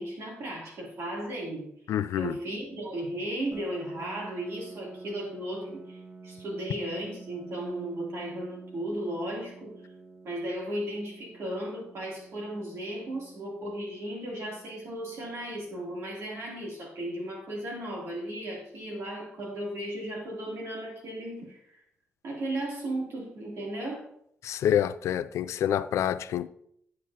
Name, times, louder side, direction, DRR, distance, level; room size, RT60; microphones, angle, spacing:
voice 1, 0.0-1.7 2.2-9.7 10.2-21.8 22.2-24.1, right 1 dB, 65° right, 3.0 m, -35 dB
voice 2, 1.9-2.3 24.4-26.5, left 10 dB, 85° left, 0.3 m, -27 dB
Piano, 3.5-18.9, right 4 dB, 25° right, 1.0 m, -50 dB
9.4 x 8.5 x 2.9 m
wide cardioid pair, 155°, 5 cm